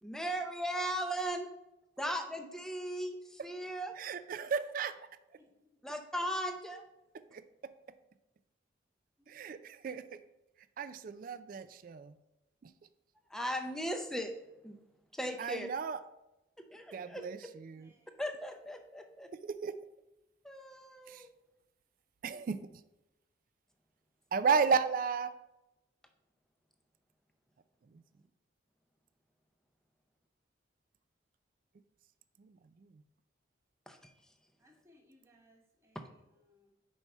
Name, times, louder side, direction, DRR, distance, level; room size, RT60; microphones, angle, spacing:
voice 1, 0.0-1.5 2.0-4.0 5.8-6.8 13.3-14.4 14.6-14.8 15.1-15.7 16.6-17.2 18.2-19.3 20.4-21.3 33.9-34.1 35.9-36.0, equal, 5° left, 5 dB, 0.5 m, -37 dB
voice 2, 4.0-5.0 7.3-7.7 9.3-10.2 10.8-12.1 15.4-16.0 16.9-17.9 19.4-19.8 21.1-21.2 22.2-22.6 24.3-25.3 32.4-32.5, right 5 dB, 45° right, 13 dB, 0.3 m, -33 dB
voice 3, 5.4-5.8 9.2-9.8 16.6-16.7 17.8-18.2 34.6-36.7, left 1 dB, 15° right, 1 dB, 1.1 m, -67 dB
5.5 x 4.6 x 5.4 m, 0.95 s
head